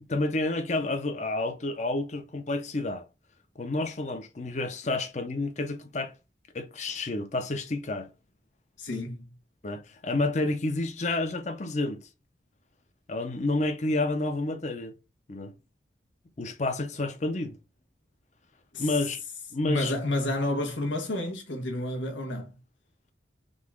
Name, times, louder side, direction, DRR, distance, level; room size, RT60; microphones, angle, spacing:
voice 1, 0.1-3.1 3.6-6.1 6.5-8.1 9.6-12.0 13.1-14.9 15.3-15.5 16.4-17.6 18.8-19.2 19.5-19.9, left 2 dB, 40° left, 0.7 m, -29 dB
voice 2, 8.8-9.3 18.7-18.9 19.6-22.6, left 1 dB, 85° left, 1.3 m, -30 dB
3.9 x 3.6 x 3.6 m
head